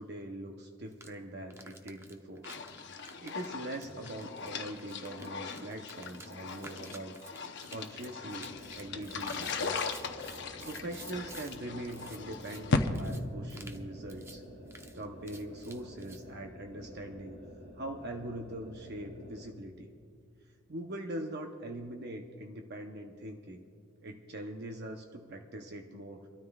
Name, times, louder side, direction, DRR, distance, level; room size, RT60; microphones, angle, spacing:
voice 1, 0.0-2.5 3.2-7.1 7.7-9.8 10.7-14.4 14.9-17.4 17.8-19.9 20.7-23.6 24.0-26.3, right 1 dB, 50° right, 3 dB, 0.8 m, -42 dB
sound 1, 0.9-1.1 1.5-11.6 11.9-12.6 12.9-13.2 13.5-13.8 14.1-14.4 14.7-16.2, right 2 dB, 15° right, 0.7 m, -51 dB
sound 2, 2.4-12.9, left 4 dB, 55° left, 0.8 m, -38 dB
sound 3, 8.4-19.5, equal, 70° right, 3.2 m, -50 dB
28.5 x 13.0 x 2.4 m, 2.2 s
head